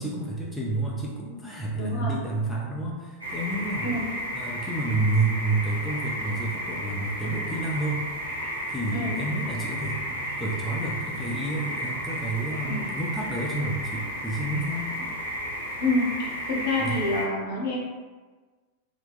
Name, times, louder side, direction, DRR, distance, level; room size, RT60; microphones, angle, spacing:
voice 1, 0.0-3.9 4.3-8.0 8.7-14.9 16.8-17.0, right 2 dB, 5° left, -5 dB, 0.5 m, -29 dB
voice 2, 1.8-2.1 3.8-4.0 8.9-9.2 12.6-12.8 15.8-17.8, left 2 dB, 60° left, -4 dB, 0.9 m, -27 dB
sound 1, 3.2-17.2, equal, 80° right, 0.8 m, -33 dB
2.7 x 2.2 x 3.6 m, 1.4 s
figure-of-eight pair, 90°, 0 cm